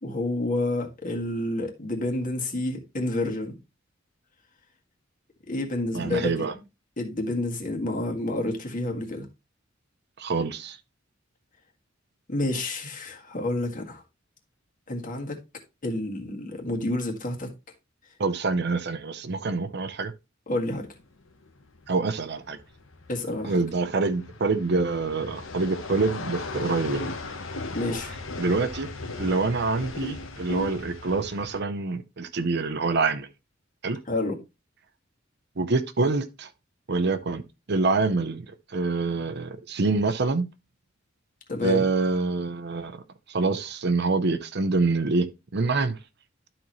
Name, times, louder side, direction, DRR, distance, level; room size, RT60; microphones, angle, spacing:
voice 1, 0.0-3.5 5.5-6.5 7.0-9.3 12.3-14.0 14.9-15.4 15.8-17.5 20.5-20.9 23.1-23.6 27.7-28.1 34.1-34.4 41.5-41.8, left 1 dB, 45° left, 1.7 m, -29 dB
voice 2, 5.9-6.5 10.2-10.8 18.2-20.1 21.9-22.6 23.4-27.1 28.4-28.9 29.2-33.3 33.8-34.0 35.6-36.5 36.9-37.4 37.7-40.5 41.6-43.0 43.3-45.3 45.5-46.0, right 3 dB, 55° right, 0.7 m, -26 dB
sound 1, 20.9-31.6, left 2 dB, 85° left, 1.2 m, -37 dB
12.0 x 4.4 x 3.1 m
head